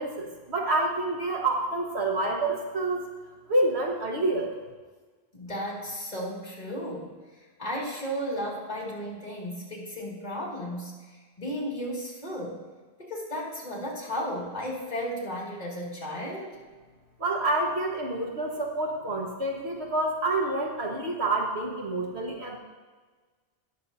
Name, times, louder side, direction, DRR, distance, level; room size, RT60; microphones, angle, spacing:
voice 1, 0.0-3.0 3.5-4.5 17.2-22.6, right 2 dB, 80° right, -1 dB, 1.7 m, -28 dB
voice 2, 5.3-12.6 13.0-16.6, equal, 40° left, -4 dB, 2.4 m, -34 dB
18.5 x 6.7 x 2.7 m, 1.4 s
omnidirectional pair, 1.1 m